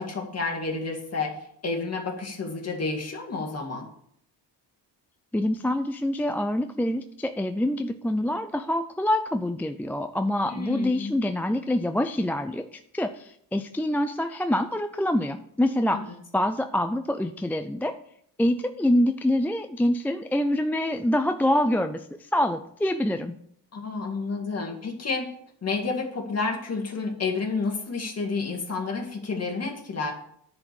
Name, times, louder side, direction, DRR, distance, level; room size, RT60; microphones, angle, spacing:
voice 1, 0.0-1.4 1.6-3.9 10.5-11.1 15.9-16.0 23.7-25.3 25.6-30.1, left 4 dB, 35° left, 2 dB, 2.1 m, -30 dB
voice 2, 5.3-16.0 16.3-17.9 18.4-23.3, left 1 dB, 5° left, 7 dB, 0.3 m, -26 dB
10.5 x 5.1 x 6.8 m, 0.69 s
cardioid pair, 135°, 42 cm